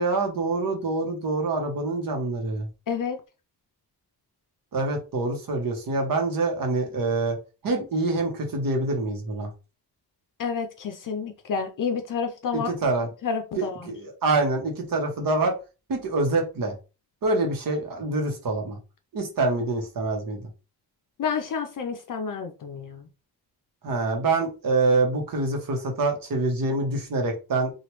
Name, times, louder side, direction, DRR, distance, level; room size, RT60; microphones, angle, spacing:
voice 1, 0.0-2.7 4.7-7.4 7.6-9.5 12.5-13.1 13.6-15.5 15.9-16.7 17.2-18.8 19.1-20.4 23.8-27.7, right 3 dB, 60° right, 2 dB, 1.0 m, -25 dB
voice 2, 2.9-3.2 10.4-12.7 13.2-13.9 21.2-23.1, left 6 dB, 55° left, 6 dB, 0.5 m, -29 dB
3.0 x 2.4 x 3.0 m, 0.31 s
wide cardioid pair, 125°, 39 cm